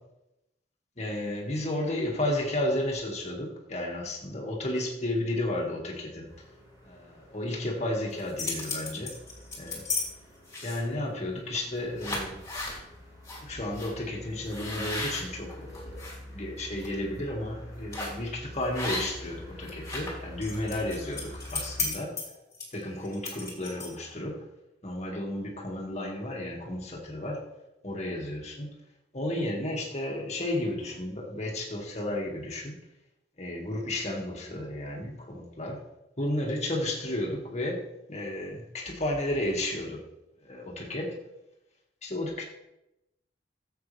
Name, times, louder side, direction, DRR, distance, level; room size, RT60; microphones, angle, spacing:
voice 1, 1.0-6.3 6.9-9.1 9.6-9.8 10.6-12.4 12.7-12.8 13.4-16.0 16.3-22.2 22.7-24.4 24.8-27.4 27.8-28.8 29.1-32.8 33.4-35.8 36.2-40.0 40.4-41.2 42.0-42.4, left 1 dB, 35° left, -1 dB, 2.1 m, -33 dB
sound 1, 6.3-21.9, left 1 dB, 15° right, 4.0 m, -47 dB
sound 2, 8.1-10.0 10.5-10.9 11.5-11.7 12.0-12.8 13.2-13.4 13.7-13.9 14.5-16.1 16.6-16.9 17.9-18.2 18.7-19.3 19.6-24.1, left 3 dB, 15° left, 3.1 m, -34 dB
15.5 x 7.9 x 3.5 m, 0.91 s
head